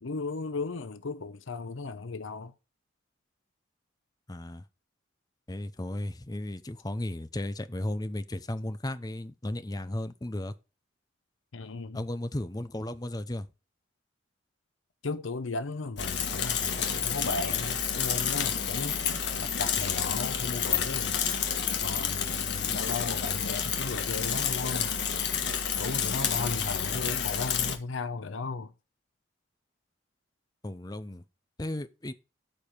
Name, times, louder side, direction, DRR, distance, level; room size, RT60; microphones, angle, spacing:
voice 1, 0.0-2.5 11.5-12.0 15.0-21.2 21.8-24.9 25.8-28.7, left 3 dB, 85° left, 0.7 m, -35 dB
voice 2, 4.3-4.6 5.5-10.5 11.9-13.5 22.7-22.9 26.9-27.1 30.6-31.2 31.6-32.1, left 1 dB, 20° left, 0.7 m, -35 dB
Bicycle / Mechanisms, 16.0-27.8, left 7 dB, 60° left, 1.6 m, -30 dB
13.0 x 4.8 x 5.1 m
head